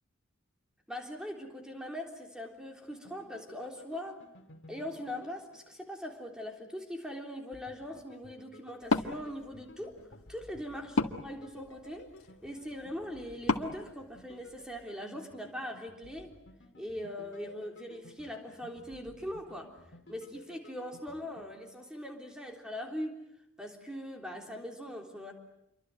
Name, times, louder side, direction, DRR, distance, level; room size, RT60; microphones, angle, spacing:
voice 1, 0.9-4.2 4.7-10.0 10.3-12.1 12.4-16.4 16.8-19.8 20.1-23.2 23.6-25.3, equal, 5° right, 2 dB, 3.6 m, -41 dB
sound 1, 2.9-6.3 7.5-21.4, left 1 dB, 55° left, 2.7 m, -55 dB
Wood, 8.8-14.8, left 3 dB, 85° left, 1.7 m, -36 dB
28.0 x 24.0 x 7.9 m, 0.85 s
head